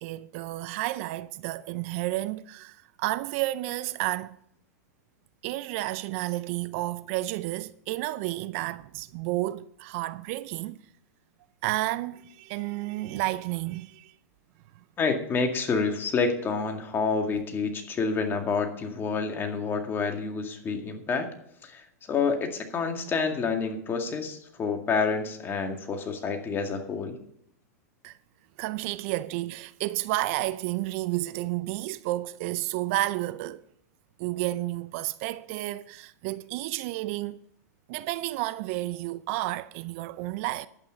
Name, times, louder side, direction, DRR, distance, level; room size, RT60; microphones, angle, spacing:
voice 1, 0.0-4.4 5.4-10.8 11.6-14.1 28.0-28.2 28.6-33.6 34.2-37.4 37.9-40.7, right 17 dB, 50° right, 0.5 m, -31 dB
voice 2, 15.0-21.3 21.6-27.2, left 5 dB, 25° left, 2.0 m, -28 dB
11.5 x 8.9 x 5.2 m
hypercardioid pair, 125°, 9 cm